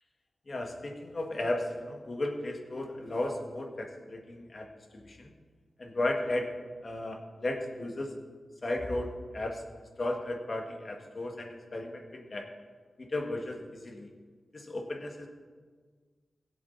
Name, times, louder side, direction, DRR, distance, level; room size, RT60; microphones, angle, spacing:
voice 1, 0.5-5.3 5.8-6.5 6.8-8.1 8.6-9.6 10.0-12.5 13.0-14.1 14.5-15.3, left 1 dB, 50° left, 2 dB, 1.8 m, -35 dB
17.0 x 7.6 x 4.1 m, 1.5 s
cardioid pair, 50°, 0 cm